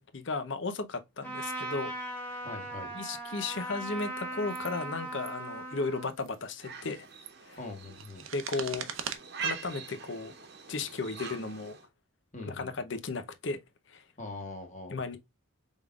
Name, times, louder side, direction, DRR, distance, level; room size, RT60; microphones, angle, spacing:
voice 1, 0.0-1.9 2.3-2.4 2.9-7.1 7.4-7.6 8.3-8.9 9.4-10.3 10.7-11.8 12.5-13.6 13.9-14.0 14.9-15.2, left 3 dB, 55° left, 0.7 m, -35 dB
Trumpet, 1.2-6.1, right 1 dB, 10° left, 1.6 m, -38 dB
voice 2, 2.4-2.9 7.6-8.2 12.3-12.7 14.2-15.0, left 2 dB, 35° left, 1.3 m, -42 dB
sound 1, 3.9-4.1 4.5-4.8 5.1-5.3 6.1-6.4 7.0-9.2, right 8 dB, 70° right, 0.7 m, -41 dB
sound 2, 6.6-11.9, right 7 dB, 50° right, 1.0 m, -43 dB
5.2 x 3.6 x 2.3 m
head